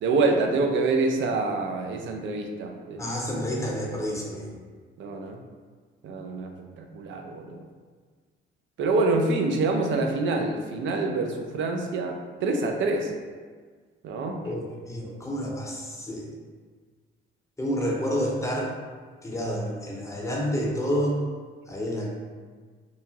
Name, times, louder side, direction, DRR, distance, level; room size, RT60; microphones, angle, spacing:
voice 1, 0.0-3.1 5.0-5.4 6.0-7.7 8.8-13.1 14.0-14.4, right 3 dB, 70° right, 3 dB, 0.4 m, -26 dB
voice 2, 3.0-4.5 14.4-16.3 17.6-18.7 19.2-21.2 21.7-22.1, equal, 15° left, -2 dB, 0.6 m, -29 dB
2.7 x 2.3 x 2.8 m, 1.5 s
cardioid pair, 90°, 20 cm